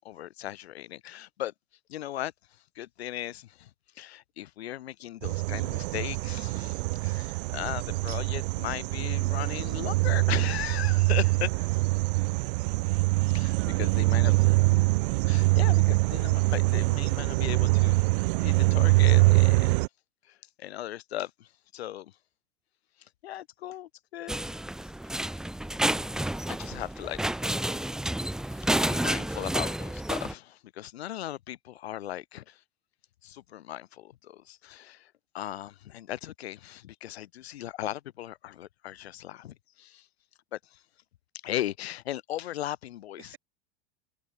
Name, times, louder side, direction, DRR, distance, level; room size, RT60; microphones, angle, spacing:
voice 1, 0.0-1.5 1.9-2.3 2.8-3.7 4.0-11.5 13.3-14.3 14.7-14.8 15.2-18.0 18.4-19.8 20.3-22.1 23.2-24.3 25.2-25.3 26.5-27.6 28.5-32.6 33.2-40.1 40.5-40.8 41.4-43.3, left 13 dB, 75° left, 5.6 m, -37 dB
sound 1, 5.2-19.9, right 24 dB, 55° right, 0.4 m, -24 dB
voice 2, 12.8-13.2 13.5-15.0 43.2-43.4, right 14 dB, 40° right, 6.4 m, -51 dB
sound 2, 24.3-30.3, right 1 dB, ahead, 0.6 m, -30 dB
hypercardioid pair, 95°, 32 cm